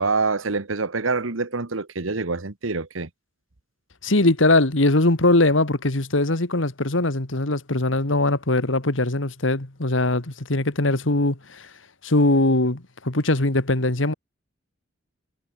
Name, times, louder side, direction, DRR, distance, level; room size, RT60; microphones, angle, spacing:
voice 1, 0.0-3.1, right 3 dB, 90° right, 1.4 m, -26 dB
voice 2, 4.0-11.7 12.0-14.1, left 2 dB, 75° left, 2.2 m, -21 dB
head